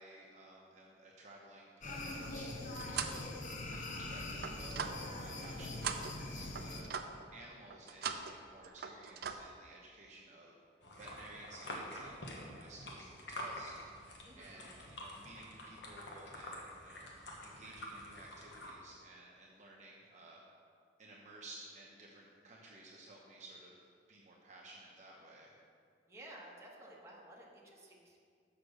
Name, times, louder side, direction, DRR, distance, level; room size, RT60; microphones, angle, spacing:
voice 1, 0.0-3.3 3.7-6.9 7.3-10.5 10.9-20.4 21.0-25.5, right 2 dB, 45° right, -3 dB, 0.9 m, -55 dB
sound 1, 1.8-6.8, left 2 dB, 45° left, 0.8 m, -43 dB
sound 2, 2.2-3.3 3.7-5.5 5.8-7.3 7.7-8.4 8.6-9.4, right 6 dB, 60° right, 0.5 m, -41 dB
sound 3, 10.8-18.7, left 1 dB, 75° left, 1.3 m, -47 dB
voice 2, 14.2-14.7 26.1-28.2, right 1 dB, 15° right, -4 dB, 1.4 m, -54 dB
6.6 x 5.9 x 6.6 m, 2.1 s
head